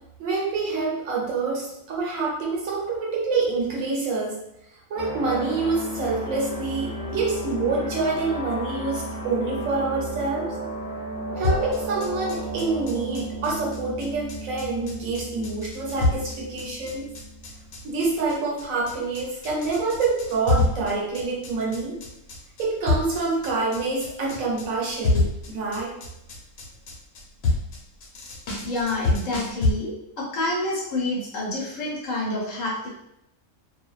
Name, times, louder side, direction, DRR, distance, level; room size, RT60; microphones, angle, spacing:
voice 1, 0.2-4.4 4.9-10.5 11.4-17.0 17.8-22.0 22.6-26.0, right 3 dB, 70° right, -3 dB, 1.0 m, -27 dB
sound 1, 5.0-18.0, equal, 25° left, 0.4 m, -34 dB
sound 2, 11.4-29.7, left 3 dB, 85° left, 1.1 m, -27 dB
voice 2, 28.6-32.9, left 2 dB, 70° left, -4 dB, 1.0 m, -28 dB
2.6 x 2.2 x 2.3 m, 0.80 s
omnidirectional pair, 1.5 m